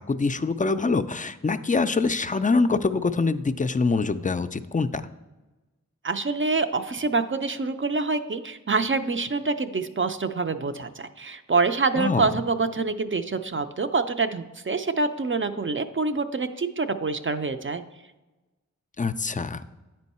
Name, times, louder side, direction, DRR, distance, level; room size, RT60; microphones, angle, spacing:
voice 1, 0.0-5.0 12.0-12.3 19.0-19.6, left 4 dB, 25° left, 11 dB, 0.3 m, -24 dB
voice 2, 6.0-17.8, right 4 dB, 40° right, 9 dB, 0.4 m, -26 dB
9.7 x 4.5 x 4.2 m, 1.1 s
wide cardioid pair, 45°, 31 cm